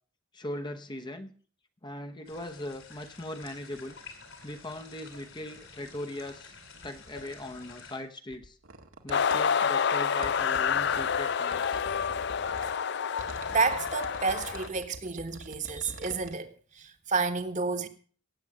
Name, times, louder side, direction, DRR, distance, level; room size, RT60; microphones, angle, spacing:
voice 1, 0.3-1.3 1.8-4.0 4.4-6.6 6.8-8.6 9.0-11.8, left 1 dB, 20° left, 0.9 m, -40 dB
sound 1, 2.3-8.0, left 4 dB, 75° left, 4.6 m, -50 dB
sound 2, 8.3-9.4 10.2-12.7 13.2-16.3, right 2 dB, 85° right, 1.9 m, -45 dB
sound 3, 9.1-14.7, left 7 dB, 55° left, 0.5 m, -28 dB
voice 2, 13.2-17.9, right 4 dB, 40° right, 1.4 m, -30 dB
17.0 x 8.2 x 6.0 m
head